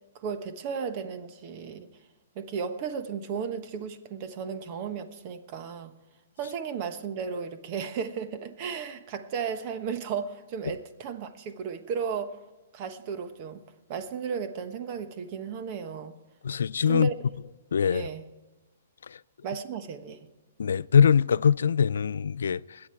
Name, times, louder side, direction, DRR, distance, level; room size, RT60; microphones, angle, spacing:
voice 1, 0.1-1.9 2.3-5.9 6.4-12.4 12.7-13.6 13.9-16.1 16.9-17.2 17.9-18.3 19.4-20.3, right 6 dB, 35° right, 1.2 m, -34 dB
voice 2, 16.4-17.1 17.7-18.1 19.1-19.2 20.6-22.8, left 7 dB, 90° left, 0.4 m, -23 dB
21.0 x 8.8 x 4.5 m
hypercardioid pair, 160°, 0 cm